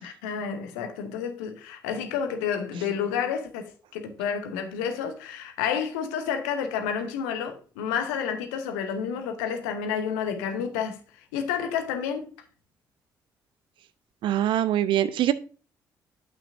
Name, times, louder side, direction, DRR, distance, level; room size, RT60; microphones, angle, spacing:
voice 1, 0.0-11.0 11.3-12.3, left 7 dB, 70° left, 0.8 m, -30 dB
voice 2, 14.2-15.3, right 12 dB, 55° right, 0.5 m, -23 dB
10.0 x 5.8 x 2.5 m
figure-of-eight pair, 40°, 10 cm